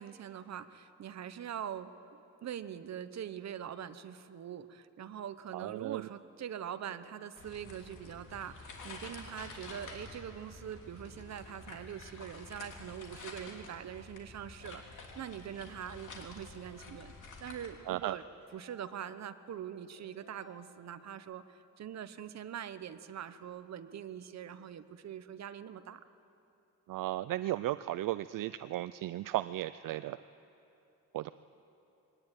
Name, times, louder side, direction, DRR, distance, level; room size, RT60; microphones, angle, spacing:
voice 1, 0.0-17.1 17.4-18.2 18.5-26.0, right 9 dB, 55° right, 11 dB, 0.9 m, -43 dB
voice 2, 5.5-6.1 17.9-18.2 26.9-30.2 31.1-31.3, right 15 dB, 75° right, 14 dB, 0.5 m, -35 dB
sound 1, 7.4-17.7, left 3 dB, 65° left, 3.2 m, -49 dB
Keyboard (musical) / Ringtone, 14.7-16.0 16.4-17.8 18.2-19.5 20.0-21.3, left 6 dB, 85° left, 3.1 m, -63 dB
22.5 x 19.0 x 9.1 m, 2.8 s
wide cardioid pair, 150°, 33 cm